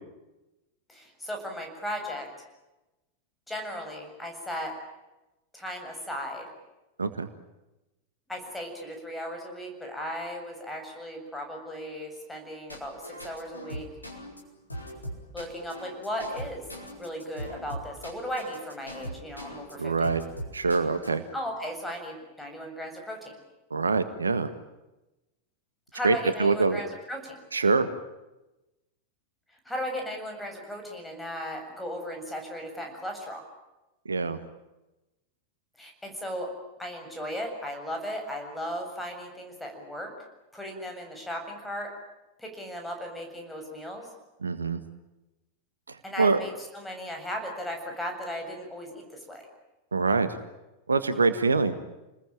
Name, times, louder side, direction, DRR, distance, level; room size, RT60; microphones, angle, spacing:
voice 1, 0.9-2.3 3.5-4.8 5.5-6.5 8.3-13.9 15.3-16.6 17.0-20.1 21.3-23.4 25.9-27.4 29.7-33.4 35.8-36.5 36.8-40.1 40.5-41.9 42.4-44.1 46.0-49.4, equal, 5° left, 2 dB, 7.4 m, -36 dB
sound 1, 12.7-19.7 20.0-21.2, equal, 85° left, 4.8 m, -40 dB
voice 2, 19.8-20.2 20.5-21.2 23.7-24.5 26.0-26.8 27.5-27.9 34.1-34.4 44.4-44.8 45.9-46.4 49.9-50.4 50.9-51.7, right 4 dB, 75° right, 11 dB, 1.6 m, -24 dB
28.5 x 21.0 x 8.9 m, 1.0 s
figure-of-eight pair, 90°, 0 cm